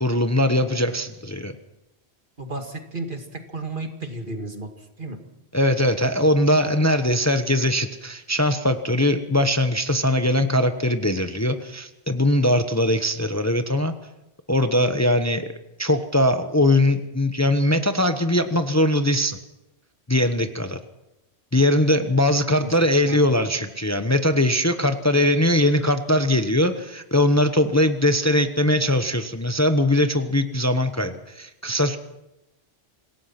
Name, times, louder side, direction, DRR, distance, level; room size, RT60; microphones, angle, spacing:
voice 1, 0.0-1.5 5.5-13.9 14.5-15.5 15.8-19.4 20.1-20.8 21.5-32.0, left 1 dB, 15° left, 8 dB, 1.1 m, -21 dB
voice 2, 2.4-5.2 22.1-22.2 22.6-22.8 23.1-23.2, right 2 dB, 50° right, 4 dB, 2.5 m, -33 dB
26.5 x 17.5 x 6.0 m, 0.92 s
omnidirectional pair, 1.1 m